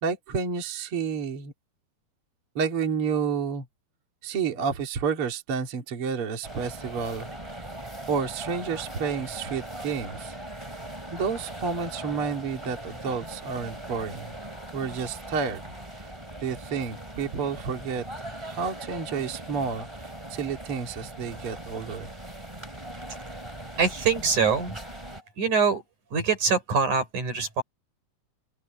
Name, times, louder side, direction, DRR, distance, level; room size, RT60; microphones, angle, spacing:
voice 1, 0.0-1.5 2.5-3.7 4.2-7.6 8.1-10.4 11.1-14.3 14.7-15.6 16.0-16.1 16.4-22.1, right 6 dB, 45° right, 3.1 m, -30 dB
sound 1, 6.4-25.2, right 1 dB, 10° right, 3.8 m, -40 dB
voice 2, 23.8-24.9 25.4-25.8 26.1-27.6, right 5 dB, 75° right, 7.2 m, -24 dB
open air
omnidirectional pair, 3.5 m